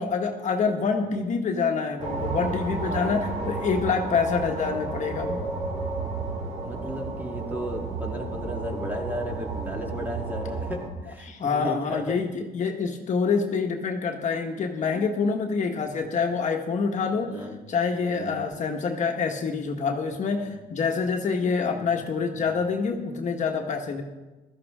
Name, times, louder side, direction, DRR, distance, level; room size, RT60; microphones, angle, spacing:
voice 1, 0.0-5.4 11.2-17.3 17.7-24.0, left 5 dB, 45° left, 3 dB, 1.4 m, -26 dB
sound 1, 2.0-10.9, right 3 dB, 40° right, 2.9 m, -32 dB
voice 2, 2.8-3.1 6.5-12.3 14.9-15.1 15.9-16.2 17.3-17.6 18.1-18.4 20.3-20.5 21.7-21.9 22.3-22.6, equal, 10° right, 1 dB, 1.9 m, -35 dB
15.5 x 13.0 x 3.7 m, 1.2 s
cardioid pair, 110°, 17 cm